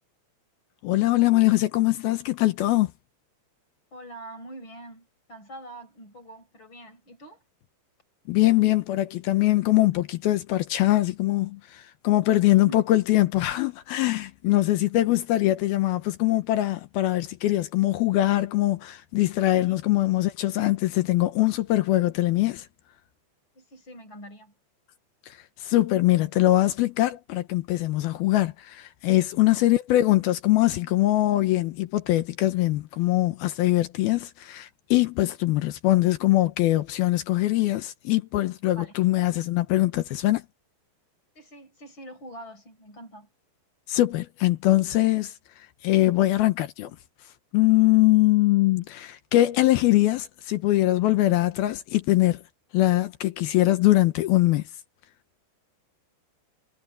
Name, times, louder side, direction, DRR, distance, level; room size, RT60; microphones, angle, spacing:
voice 1, 0.8-2.9 8.3-22.7 25.3-40.4 43.9-45.3 45.8-46.9 47.5-52.4 52.7-54.6, left 16 dB, 75° left, 2.5 m, -22 dB
voice 2, 3.9-7.4 12.6-12.8 14.7-14.9 19.6-19.8 23.5-24.5 29.4-29.7 34.1-34.3 38.8-38.9 41.3-43.3, right 1 dB, 25° left, 6.3 m, -45 dB
omnidirectional pair, 5.0 m